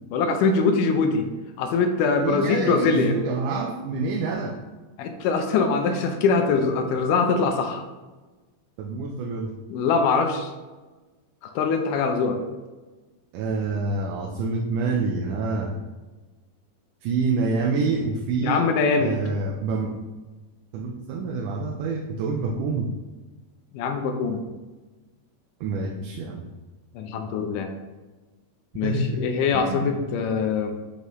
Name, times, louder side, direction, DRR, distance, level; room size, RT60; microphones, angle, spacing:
voice 1, 0.1-1.3 1.6-3.1 5.0-7.8 9.7-10.5 11.4-12.4 18.4-19.2 23.7-24.4 26.9-27.7 28.7-30.8, left 4 dB, 85° left, 5 dB, 2.2 m, -23 dB
voice 2, 2.2-4.5 8.8-9.5 13.3-15.8 17.0-18.6 19.0-19.9 20.7-22.9 25.6-26.4 28.8-29.3 29.5-29.9, right 4 dB, 80° right, -1 dB, 2.1 m, -27 dB
6.4 x 5.4 x 3.1 m, 1.2 s
omnidirectional pair, 3.7 m